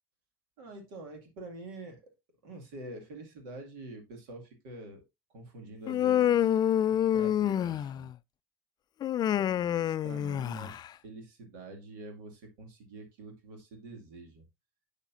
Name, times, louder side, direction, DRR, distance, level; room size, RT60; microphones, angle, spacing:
voice 1, 0.6-2.0 2.4-5.0 5.3-6.6 6.9-8.1 9.3-14.5, right 2 dB, 80° right, 3 dB, 2.3 m, -46 dB
Human voice, 5.9-8.1 9.0-10.9, left 10 dB, 45° left, 0.3 m, -27 dB
8.1 x 7.0 x 2.6 m, 0.21 s
hypercardioid pair, 65°, 10 cm